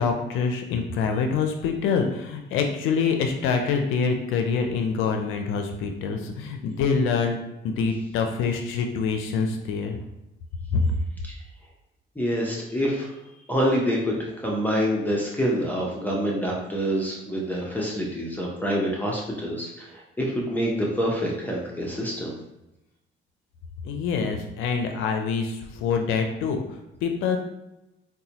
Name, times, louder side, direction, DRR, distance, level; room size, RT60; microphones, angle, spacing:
voice 1, 0.0-7.4 7.6-10.0 10.7-10.9 23.8-27.4, left 5 dB, 90° left, 4 dB, 0.4 m, -25 dB
voice 2, 12.2-13.1 13.5-22.3, equal, 10° left, -3 dB, 0.6 m, -26 dB
3.9 x 2.2 x 2.8 m, 0.90 s
cardioid pair, 90°, 20 cm